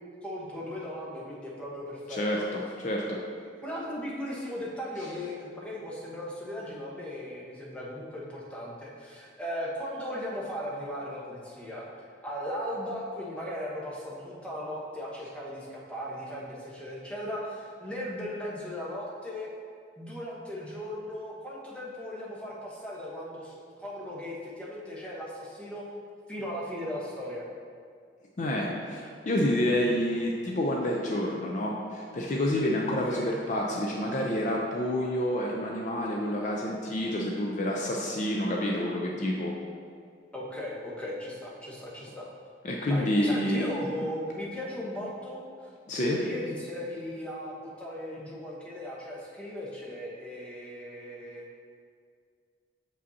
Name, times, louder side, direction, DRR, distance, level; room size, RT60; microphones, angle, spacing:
voice 1, 0.2-2.5 3.1-11.9 12.2-19.5 20.0-25.8 26.3-27.5 33.0-33.3 40.3-42.2 42.9-45.7 46.0-51.4, left 1 dB, 5° left, -5 dB, 0.9 m, -37 dB
voice 2, 2.1-3.2 28.4-39.5 42.6-43.7 45.9-46.2, left 1 dB, 45° left, -1 dB, 0.5 m, -28 dB
6.9 x 5.1 x 2.7 m, 2.2 s
head